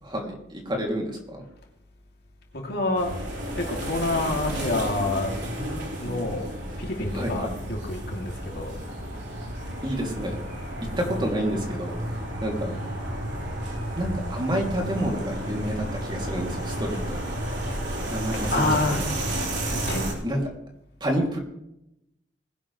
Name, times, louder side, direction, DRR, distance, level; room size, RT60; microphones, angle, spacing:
voice 1, 0.0-1.4 7.1-7.6 9.8-10.4 11.0-12.8 13.9-17.2 18.0-19.0 20.2-20.4 21.0-21.4, equal, 25° right, 1 dB, 2.9 m, -29 dB
voice 2, 2.5-3.2 3.5-5.3 6.0-6.5 6.8-8.7 16.6-16.9 18.5-19.0 19.7-20.0, left 2 dB, 65° left, 0 dB, 3.0 m, -27 dB
sound 1, 3.0-20.1, right 1 dB, 70° right, 4.4 m, -32 dB
21.0 x 11.0 x 3.3 m, 0.82 s
head